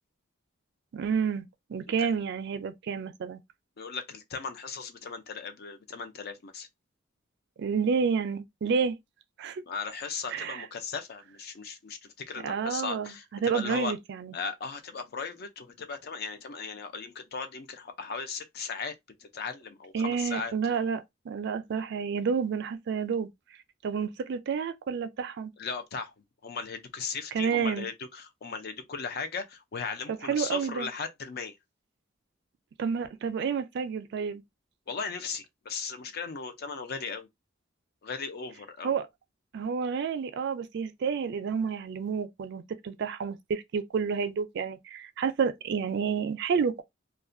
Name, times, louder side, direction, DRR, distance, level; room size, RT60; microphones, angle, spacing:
voice 1, 0.9-3.4 7.6-9.0 9.4-9.6 10.3-10.7 12.4-14.3 19.9-23.3 23.8-25.5 27.3-27.9 30.2-30.9 32.8-34.4 38.8-39.1 39.5-46.8, right 6 dB, 60° right, 0.4 m, -30 dB
voice 2, 3.8-6.7 9.7-13.2 13.5-13.9 14.3-18.9 19.2-20.5 25.6-26.1 26.4-31.5 34.9-37.3 38.0-38.9, left 5 dB, 55° left, 0.5 m, -37 dB
2.3 x 2.1 x 2.5 m
head